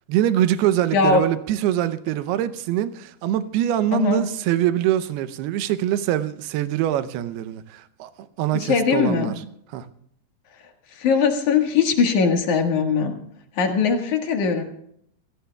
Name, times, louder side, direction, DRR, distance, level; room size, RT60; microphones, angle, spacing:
voice 1, 0.1-9.4 9.7-9.9, right 12 dB, 90° right, 2.8 m, -24 dB
voice 2, 0.9-1.2 3.9-4.2 8.5-9.3 10.9-13.1 13.6-14.6, left 5 dB, 60° left, 2.7 m, -20 dB
27.0 x 17.5 x 2.3 m
omnidirectional pair, 4.5 m